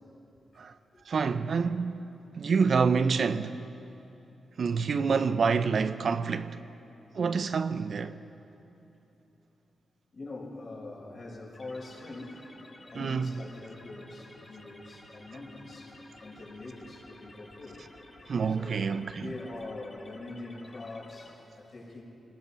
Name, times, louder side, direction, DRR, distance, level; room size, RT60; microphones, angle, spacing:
voice 1, 1.1-2.1 2.3-3.6 4.6-6.6 7.1-8.2 13.0-13.4 18.3-19.2, right 5 dB, 55° right, 0.7 m, -27 dB
voice 2, 10.1-12.5 12.8-15.9 16.2-17.8 18.6-22.0, left 2 dB, 45° left, 6.2 m, -43 dB
sound 1, 11.5-21.3, left 2 dB, 30° left, 4.0 m, -53 dB
26.5 x 19.0 x 5.8 m
wide cardioid pair, 105°, 0 cm